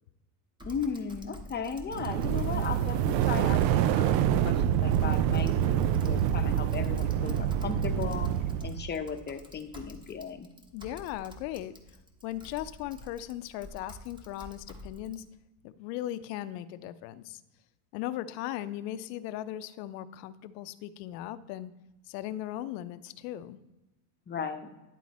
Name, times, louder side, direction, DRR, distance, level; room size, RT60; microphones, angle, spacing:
voice 1, 0.6-8.3 8.6-10.5 24.3-24.7, left 6 dB, 20° left, 6 dB, 0.7 m, -36 dB
Typing, 0.6-15.2, left 1 dB, 10° right, 0.9 m, -49 dB
sound 1, 1.9-8.9, right 10 dB, 80° right, 0.6 m, -26 dB
voice 2, 10.7-11.7 12.2-15.2 15.6-17.4 17.9-21.7 22.1-23.6, left 13 dB, 75° left, 13 dB, 0.7 m, -38 dB
11.0 x 3.8 x 4.1 m, 1.0 s
supercardioid pair, 110°, 50 cm